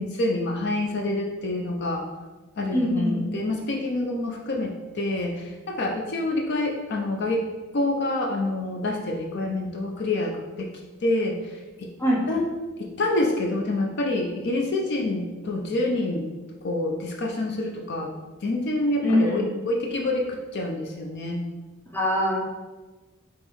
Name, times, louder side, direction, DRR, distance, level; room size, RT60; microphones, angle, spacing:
voice 1, 0.0-2.0 2.6-7.4 7.7-10.7 11.0-11.4 11.8-11.9 12.3-12.5 12.8-16.3 16.6-18.1 18.4-20.3 20.5-21.4, left 2 dB, 50° left, 1 dB, 0.5 m, -27 dB
voice 2, 2.7-3.2 12.0-12.2 19.0-19.4 21.9-22.4, left 1 dB, 10° left, -3 dB, 0.7 m, -22 dB
3.6 x 3.0 x 4.6 m, 1.2 s
head